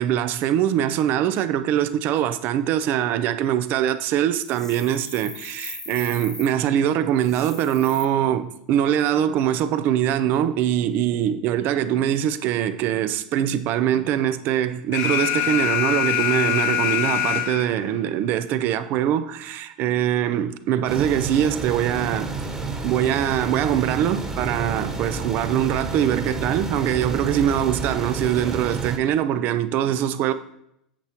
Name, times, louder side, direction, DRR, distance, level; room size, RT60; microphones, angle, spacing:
voice 1, 0.0-22.3 22.8-30.3, right 10 dB, 50° right, 0.5 m, -23 dB
sound 1, 4.4-6.5 7.2-8.0, left 2 dB, 10° left, 0.5 m, -39 dB
Alarm, 14.9-17.9, left 12 dB, 55° left, 0.9 m, -24 dB
sound 2, 20.9-29.0, right 3 dB, 15° right, 1.3 m, -30 dB
8.7 x 6.7 x 3.0 m
hypercardioid pair, 95°, 4 cm